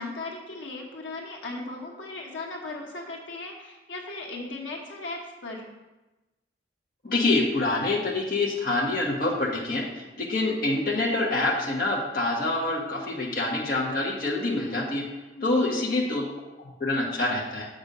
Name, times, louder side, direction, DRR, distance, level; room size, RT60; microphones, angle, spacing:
voice 1, 0.0-5.6 15.3-15.7, left 2 dB, 85° left, 0 dB, 1.3 m, -37 dB
voice 2, 7.0-15.1 15.4-16.3 16.6-17.7, left 2 dB, 50° left, -3 dB, 1.1 m, -26 dB
7.1 x 5.1 x 5.4 m, 1.1 s
head